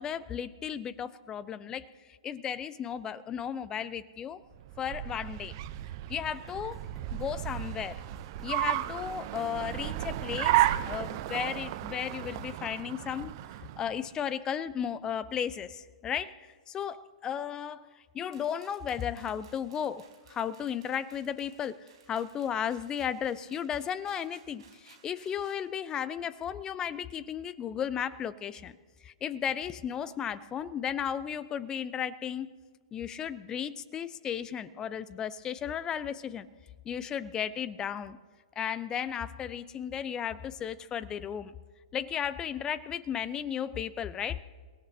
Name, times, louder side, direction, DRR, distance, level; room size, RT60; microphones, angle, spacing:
voice 1, 0.0-4.4 4.8-5.6 6.1-6.8 7.1-8.0 8.4-13.4 13.8-17.9 18.1-28.8 29.0-32.5 32.9-36.5 36.8-38.2 38.6-41.5 41.9-44.4, left 8 dB, 20° left, 17 dB, 0.7 m, -35 dB
Car, 4.5-14.1, right 15 dB, 40° right, 0.7 m, -33 dB
sound 1, 6.3-12.6, right 2 dB, 5° right, 1.5 m, -52 dB
sound 2, 18.3-25.6, right 6 dB, 55° right, 4.2 m, -60 dB
29.5 x 17.5 x 2.8 m, 1.5 s
figure-of-eight pair, 110°, 4 cm